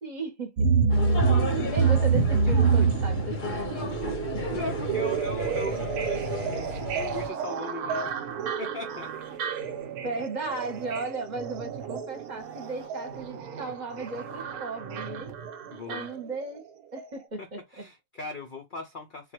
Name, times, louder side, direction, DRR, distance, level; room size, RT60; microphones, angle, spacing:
voice 1, 0.0-0.7 1.1-4.4 10.0-15.3 15.9-16.6 16.9-17.8, right 3 dB, 35° right, 0.9 m, -36 dB
sound 1, 0.6-16.7 17.0-17.1, right 5 dB, 85° right, 1.1 m, -28 dB
sound 2, 0.9-7.3, left 2 dB, 45° left, 0.7 m, -34 dB
sound 3, 1.4-16.4 16.8-16.9, right 7 dB, 60° right, 0.6 m, -44 dB
voice 2, 4.4-8.3 8.6-9.1 15.7-16.2 17.4-19.3, left 4 dB, 80° left, 0.4 m, -39 dB
3.9 x 2.3 x 2.9 m
omnidirectional pair, 1.6 m